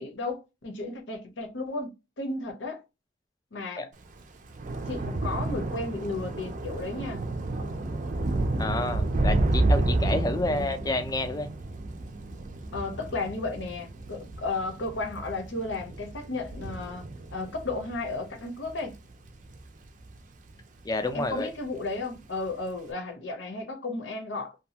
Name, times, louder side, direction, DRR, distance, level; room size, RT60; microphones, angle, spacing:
voice 1, 0.0-2.8 3.5-3.9 4.9-7.2 10.5-10.7 12.7-17.1 17.3-19.0 21.1-24.5, left 3 dB, 80° left, 0.7 m, -34 dB
Thunder / Rain, 4.0-20.6 21.0-21.4 21.7-21.9, right 2 dB, 45° right, 0.4 m, -31 dB
voice 2, 8.6-11.5 20.8-21.5, left 2 dB, 20° left, 0.4 m, -29 dB
2.7 x 2.3 x 2.8 m
head